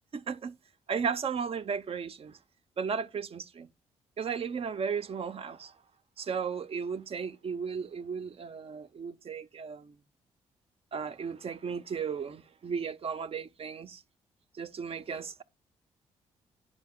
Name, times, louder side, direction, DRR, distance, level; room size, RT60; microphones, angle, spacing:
voice 1, 0.1-0.5 0.9-2.4 2.8-3.7 4.2-5.7 6.2-10.0 10.9-14.0 14.5-15.4, right 6 dB, 40° right, 0.6 m, -35 dB
10.5 x 4.8 x 2.2 m
hypercardioid pair, 45°, 14 cm